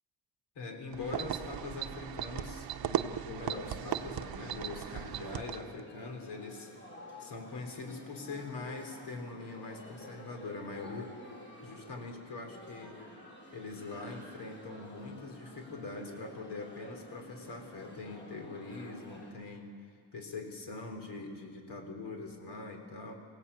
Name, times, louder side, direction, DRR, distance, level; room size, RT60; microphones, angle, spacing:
voice 1, 0.6-6.7 7.2-11.2 11.6-13.0 13.5-19.7 20.1-23.1, left 3 dB, 65° left, 4 dB, 4.1 m, -43 dB
sound 1, 0.9-5.8, right 10 dB, 55° right, 0.9 m, -37 dB
sound 2, 3.3-19.3, left 1 dB, 25° left, 7.2 m, -51 dB
27.0 x 17.5 x 8.5 m, 2.1 s
cardioid pair, 155°, 43 cm